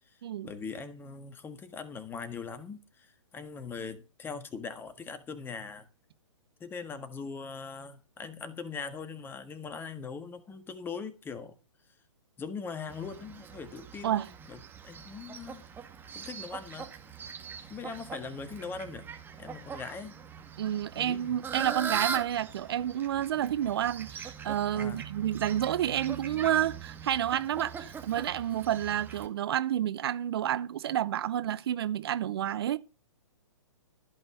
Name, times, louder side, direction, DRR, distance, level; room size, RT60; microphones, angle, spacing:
voice 1, 0.4-5.9 6.6-11.6 12.4-14.6 14.8-15.6 16.1-16.9 17.7-19.1 19.4-20.2 20.9-21.4 24.7-25.1, left 5 dB, 15° left, 1.5 m, -41 dB
Fowl, 12.9-29.3, right 6 dB, 10° right, 2.1 m, -41 dB
voice 2, 20.6-32.8, right 11 dB, 50° right, 0.8 m, -30 dB
15.5 x 5.4 x 6.9 m
figure-of-eight pair, 125°, 16 cm